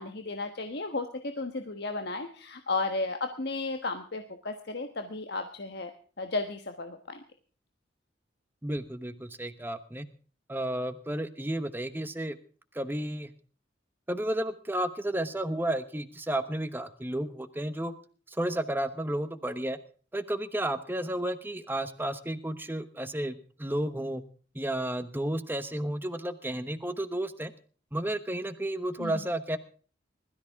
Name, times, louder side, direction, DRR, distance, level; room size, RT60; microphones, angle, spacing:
voice 1, 0.0-7.2 29.0-29.1, left 3 dB, 60° left, 6 dB, 1.3 m, -34 dB
voice 2, 8.6-10.1 10.5-12.4 12.7-13.3 14.1-17.9 18.3-19.8 20.1-24.2 24.5-27.5 27.9-29.6, right 1 dB, 10° right, 10 dB, 1.1 m, -32 dB
21.0 x 13.5 x 3.6 m, 0.40 s
head